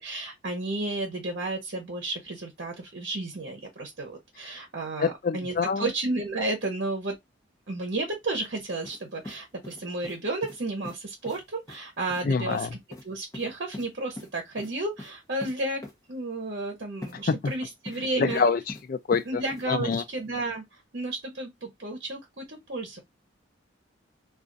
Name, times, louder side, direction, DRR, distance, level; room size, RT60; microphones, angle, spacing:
voice 1, 0.0-7.2 7.7-12.7 13.0-15.8 16.1-18.4 19.3-23.0, right 2 dB, 55° right, 0.8 m, -32 dB
voice 2, 5.0-5.9 12.2-12.7 17.3-17.5 18.2-18.6 18.9-19.4 19.7-20.0, left 5 dB, 45° left, 0.3 m, -25 dB
sound 1, 8.8-9.0 9.2-10.2 10.4-10.6 10.8-11.0 11.2-11.4 11.7-11.8 12.1-12.2 12.5-12.6 12.9-13.0 13.3-13.9 14.2-14.3 14.6-14.7 15.0-15.1 15.4-15.5 15.8-15.9 17.0-17.1 17.4-18.0 18.3-18.8 19.1-19.6 19.9-20.0, left 1 dB, 15° left, 0.7 m, -41 dB
2.4 x 2.4 x 3.8 m
head